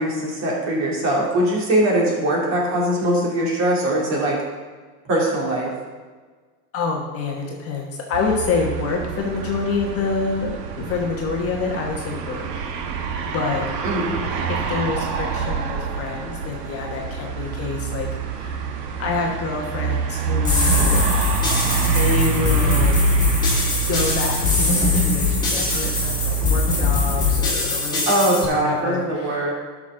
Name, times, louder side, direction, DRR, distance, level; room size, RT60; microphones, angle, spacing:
voice 1, 0.0-4.4 5.0-5.7 13.8-14.2 28.1-29.5, right 1 dB, 35° right, -3 dB, 2.8 m, -21 dB
voice 2, 6.7-10.5 10.8-12.5 12.8-13.7 14.5-18.6 19.0-21.0 21.8-23.0 23.9-28.1 28.4-29.5, left 4 dB, 30° left, -1 dB, 1.2 m, -27 dB
sound 1, 8.1-27.4, right 6 dB, 75° right, 1.3 m, -26 dB
sound 2, 20.4-28.4, left 4 dB, 10° left, 2.4 m, -22 dB
12.0 x 6.2 x 3.8 m, 1.4 s
supercardioid pair, 145°, 48 cm